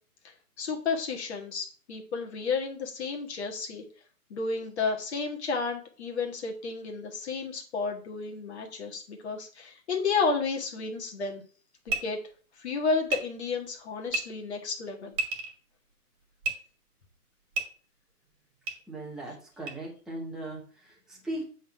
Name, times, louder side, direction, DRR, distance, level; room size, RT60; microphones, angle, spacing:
voice 1, 0.6-3.8 4.3-11.4 11.8-12.2 12.6-15.2, left 4 dB, 45° left, 2 dB, 1.7 m, -32 dB
sound 1, 11.9-12.0 13.1-13.2 14.1-14.2 15.1-15.5 16.4-16.5 17.5-17.6 18.7-18.8 19.7-19.8, right 3 dB, 25° right, 2.0 m, -29 dB
voice 2, 18.9-21.4, right 1 dB, ahead, -4 dB, 1.0 m, -38 dB
8.4 x 3.9 x 5.8 m, 0.41 s
hypercardioid pair, 155°, 46 cm